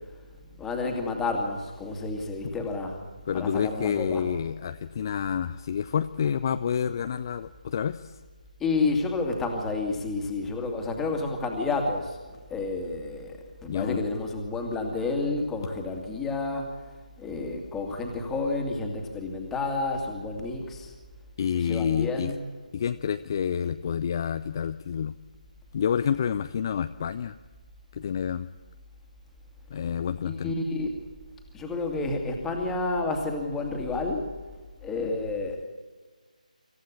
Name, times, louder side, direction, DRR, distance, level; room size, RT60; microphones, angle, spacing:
voice 1, 0.5-3.1 3.3-4.3 8.6-16.8 17.2-20.9 21.5-22.4 30.2-31.0 31.5-34.3 34.8-35.6, left 3 dB, 5° left, 2 dB, 2.3 m, -30 dB
voice 2, 3.3-8.2 13.7-14.0 21.4-22.3 22.7-25.2 25.7-27.4 27.9-28.5 29.7-30.5, left 8 dB, 30° left, 10 dB, 0.6 m, -28 dB
26.0 x 15.0 x 8.6 m, 1.4 s
figure-of-eight pair, 155°, 4 cm